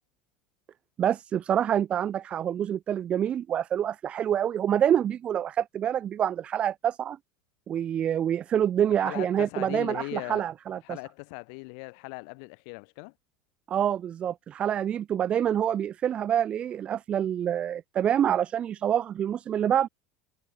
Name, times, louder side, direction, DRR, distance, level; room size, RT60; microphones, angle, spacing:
voice 1, 1.0-7.2 7.7-10.8 13.7-19.9, right 9 dB, 40° right, 0.9 m, -26 dB
voice 2, 9.0-10.5 10.8-13.1, left 38 dB, 65° left, 4.5 m, -39 dB
hypercardioid pair, 80°, 3 cm